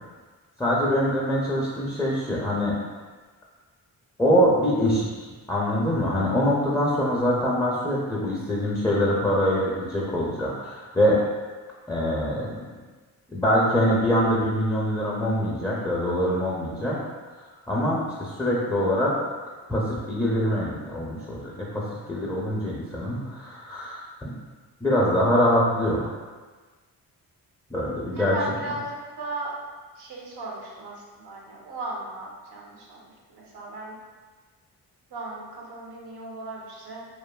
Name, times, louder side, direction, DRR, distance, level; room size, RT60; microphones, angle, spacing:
voice 1, 0.6-2.7 4.2-5.1 5.5-11.2 11.9-12.5 13.3-17.0 17.7-19.1 19.7-24.3 24.8-26.1 27.7-28.3, equal, 10° left, -6 dB, 0.4 m, -24 dB
voice 2, 28.2-29.6 30.0-33.9 35.1-37.1, right 2 dB, 80° right, -3 dB, 0.7 m, -36 dB
2.5 x 2.3 x 2.2 m, 1.4 s
cardioid pair, 70°, 39 cm